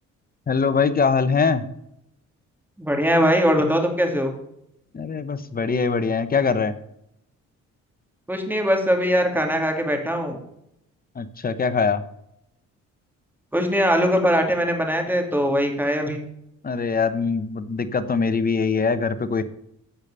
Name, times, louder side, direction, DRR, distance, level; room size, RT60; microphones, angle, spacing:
voice 1, 0.5-1.6 4.9-6.7 11.1-12.0 16.6-19.4, left 5 dB, 30° left, 12 dB, 1.1 m, -22 dB
voice 2, 2.8-4.3 8.3-10.4 13.5-16.2, equal, 5° right, 3 dB, 2.7 m, -21 dB
15.5 x 5.2 x 6.9 m, 0.78 s
cardioid pair, 90°, 30 cm